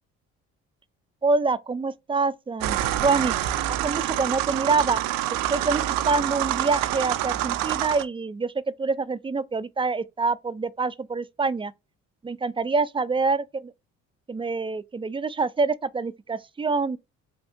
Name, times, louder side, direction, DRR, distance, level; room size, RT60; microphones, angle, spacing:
voice 1, 1.2-3.3 3.8-5.0 5.3-8.5 8.8-11.7 12.2-13.7 14.3-17.0, right 4 dB, 15° right, 0.3 m, -26 dB
sound 1, 2.6-8.0, right 13 dB, 80° right, 0.5 m, -27 dB
3.4 x 2.7 x 2.6 m
supercardioid pair, 65°, 33 cm